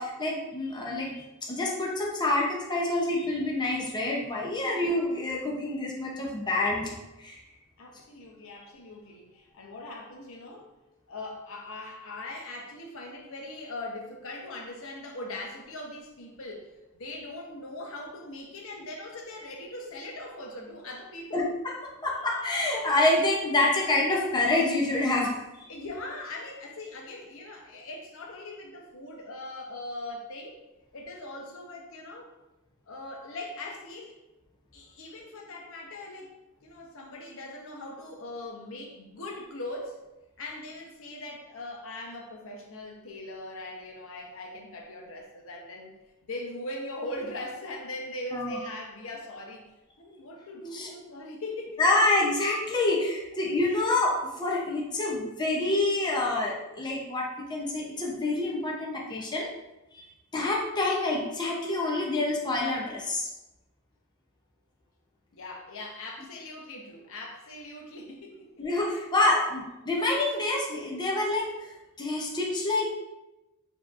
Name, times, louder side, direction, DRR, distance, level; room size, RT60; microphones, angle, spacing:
voice 1, 0.0-7.4 21.3-21.7 22.0-25.3 25.6-25.7 48.3-48.6 50.7-50.9 51.8-59.5 59.9-60.1 60.3-63.3 68.6-71.7 72.0-72.9, left 2 dB, 20° left, -2 dB, 0.6 m, -27 dB
voice 2, 7.8-10.7 11.1-16.7 17.0-21.5 25.7-30.6 30.9-32.3 32.9-34.2 34.7-36.3 36.6-40.0 40.4-45.9 46.3-49.7 50.0-51.8 65.3-68.7, left 2 dB, 65° left, 1 dB, 0.8 m, -40 dB
6.8 x 2.8 x 2.5 m, 0.99 s
head